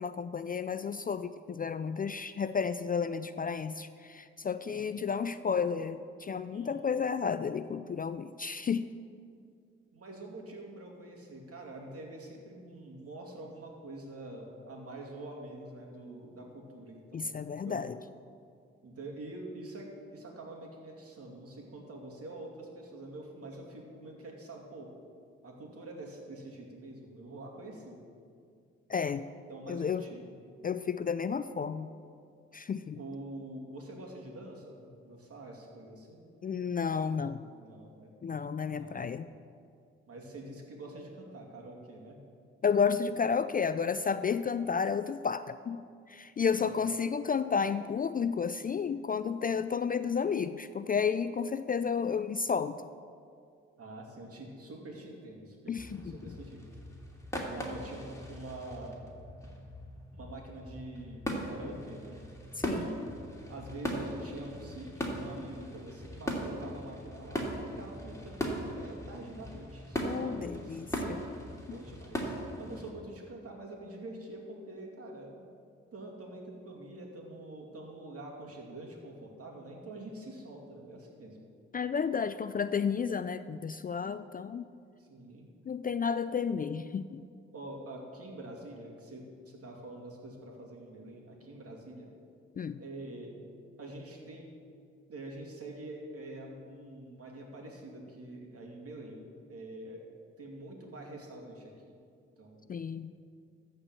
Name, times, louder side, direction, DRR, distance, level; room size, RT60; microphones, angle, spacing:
voice 1, 0.0-8.9 17.1-18.0 28.9-29.2 29.7-30.0 30.6-31.9 32.5-33.0 36.4-37.5 38.2-39.3 42.6-45.8 46.1-52.8 55.7-56.3 62.6-62.9 70.0-71.2 71.7-71.8 81.7-84.7 85.7-87.2 92.6-92.8 102.7-103.1, left 6 dB, 30° left, 13 dB, 0.4 m, -32 dB
voice 2, 9.9-17.4 17.6-17.8 18.8-24.9 25.4-28.0 29.5-30.4 32.9-36.3 37.6-38.1 38.7-39.0 40.1-42.3 46.6-46.8 53.8-56.7 57.5-59.1 60.1-62.3 62.6-63.1 63.5-70.8 71.7-75.5 75.9-81.5 85.0-85.5 87.5-92.1 92.8-93.4 93.8-94.5 95.1-100.0 100.4-101.9 102.4-102.8, right 2 dB, 50° right, 0 dB, 2.5 m, -46 dB
sound 1, 55.8-72.9, equal, 10° left, 2.7 m, -39 dB
13.5 x 4.5 x 7.7 m, 2.3 s
hypercardioid pair, 45°, 30 cm